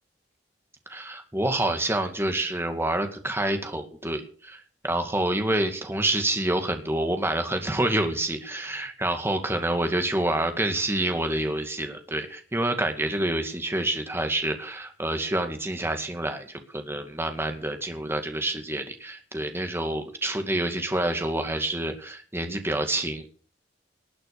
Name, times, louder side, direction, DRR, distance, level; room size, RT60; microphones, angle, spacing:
voice 1, 0.9-23.3, right 1 dB, 15° right, 5 dB, 2.2 m, -27 dB
19.5 x 8.8 x 6.7 m, 0.44 s
head